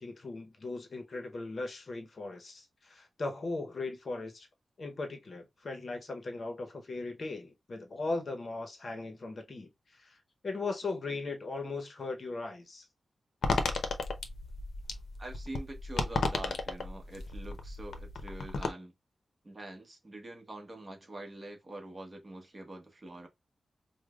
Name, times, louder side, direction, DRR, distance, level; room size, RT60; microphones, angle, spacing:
voice 1, 0.0-4.5 4.8-12.9, left 3 dB, 45° left, 0.7 m, -38 dB
sound 1, 13.4-18.7, left 3 dB, 80° left, 0.7 m, -34 dB
voice 2, 15.2-18.9 19.4-23.3, right 1 dB, 25° right, 1.0 m, -45 dB
4.9 x 2.1 x 2.3 m
wide cardioid pair, 165°, 0 cm